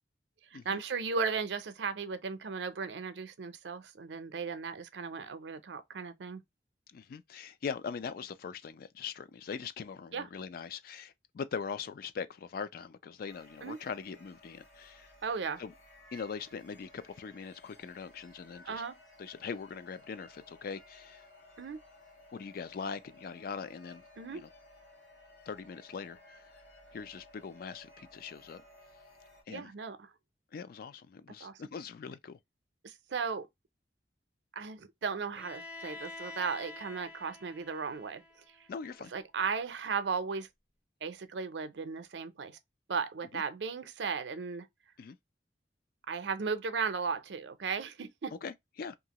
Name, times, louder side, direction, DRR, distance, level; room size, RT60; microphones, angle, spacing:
voice 1, 0.5-6.4 10.1-10.3 13.6-13.8 15.2-15.6 18.6-19.0 21.6-21.8 24.2-24.4 29.5-30.1 31.4-31.6 32.8-33.5 34.5-38.2 39.1-40.5 41.0-42.6 42.9-44.7 46.1-48.3, right 5 dB, 80° right, 0.5 m, -36 dB
voice 2, 6.9-15.1 15.6-15.7 16.1-18.8 19.2-21.2 22.3-24.0 24.3-24.5 25.5-26.5 26.9-28.6 29.5-29.7 30.5-32.4 38.7-39.1 43.3-43.4 45.0-45.2 48.4-49.0, left 6 dB, 55° left, 0.3 m, -41 dB
sound 1, 13.3-29.4, left 1 dB, 75° left, 1.3 m, -58 dB
Bowed string instrument, 35.3-39.2, left 3 dB, 5° right, 0.5 m, -48 dB
2.7 x 2.5 x 2.9 m
head